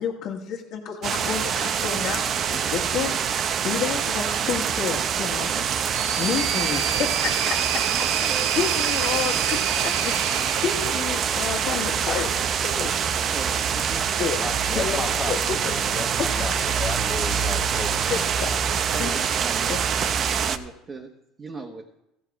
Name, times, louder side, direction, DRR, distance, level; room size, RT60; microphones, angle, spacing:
voice 1, 0.0-3.2 3.6-5.7 6.2-12.9 14.2-14.4 14.7-15.4 15.7-15.8 16.3-16.4 18.1-18.6 18.9-19.2 19.7-19.8, left 8 dB, 60° left, -3 dB, 1.6 m, -30 dB
sound 1, 1.0-20.6, right 7 dB, 45° right, 0.7 m, -25 dB
sound 2, 5.5-11.7, right 10 dB, 80° right, 0.8 m, -29 dB
voice 2, 13.2-14.1 18.9-19.7 20.3-22.0, right 3 dB, 30° right, 3 dB, 1.2 m, -39 dB
voice 3, 14.4-18.2, left 4 dB, 25° left, 13 dB, 0.5 m, -34 dB
15.0 x 7.3 x 4.8 m, 0.87 s
supercardioid pair, 100°, 0 cm